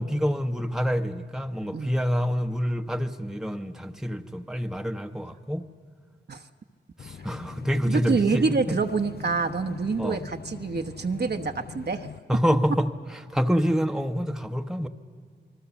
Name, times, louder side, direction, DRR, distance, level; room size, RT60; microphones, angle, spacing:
voice 1, 0.0-5.6 7.0-8.5 10.0-10.2 12.3-12.9 13.3-14.9, equal, 5° right, 6 dB, 1.0 m, -27 dB
sound 1, 7.0-12.2, left 7 dB, 55° left, 0.5 m, -42 dB
voice 2, 7.8-12.1, right 4 dB, 60° right, 5 dB, 1.1 m, -26 dB
27.0 x 20.5 x 7.2 m, 2.1 s
cardioid pair, 60°, 20 cm